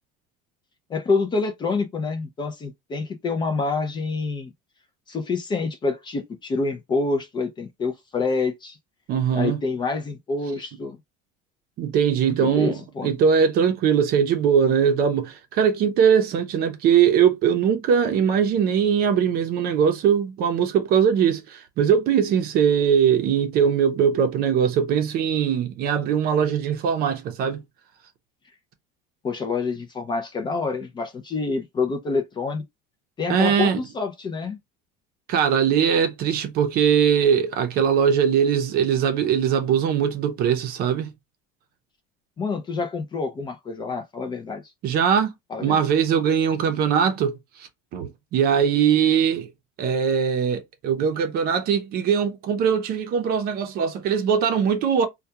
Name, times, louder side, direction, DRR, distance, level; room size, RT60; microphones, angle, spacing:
voice 1, 0.9-4.5 5.1-8.8 9.3-11.0 12.3-13.1 29.2-32.6 33.2-34.6 42.4-44.6 45.5-45.8, left 4 dB, 20° left, 0.4 m, -27 dB
voice 2, 9.1-9.6 11.8-27.6 33.3-33.8 35.3-41.1 44.8-45.3 45.6-49.5 49.8-55.1, right 7 dB, 45° right, 0.6 m, -21 dB
2.3 x 2.2 x 2.7 m
cardioid pair, 150°, 21 cm